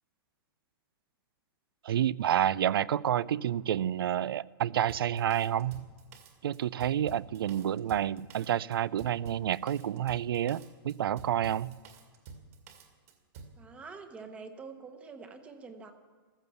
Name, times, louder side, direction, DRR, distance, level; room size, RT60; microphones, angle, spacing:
voice 1, 1.8-5.9 6.4-11.7, right 10 dB, 80° right, 0.5 m, -29 dB
Drum kit, 4.9-13.6, right 4 dB, 40° right, 2.2 m, -49 dB
voice 2, 13.5-15.9, right 4 dB, 10° right, 1.0 m, -46 dB
14.5 x 14.0 x 7.0 m
hypercardioid pair, 170°, 12 cm